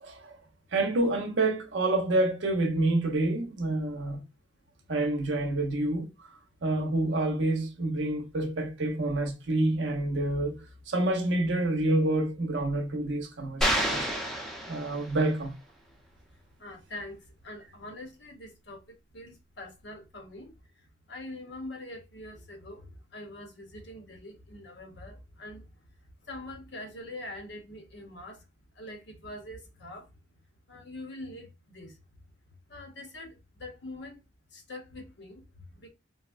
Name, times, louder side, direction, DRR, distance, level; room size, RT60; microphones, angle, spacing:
voice 1, 0.0-0.4 0.7-4.2 4.9-6.3 6.6-10.6 10.9-14.1 14.7-15.5, right 2 dB, 75° right, 0.7 m, -28 dB
sound 1, 13.6-15.3, equal, ahead, 0.6 m, -29 dB
voice 2, 16.6-17.2 17.4-18.8 19.1-20.5 21.1-25.7 26.3-28.4 28.8-30.1 30.7-32.0 32.7-34.2 34.5-35.9, left 1 dB, 65° left, 0.9 m, -44 dB
3.9 x 2.1 x 2.4 m
head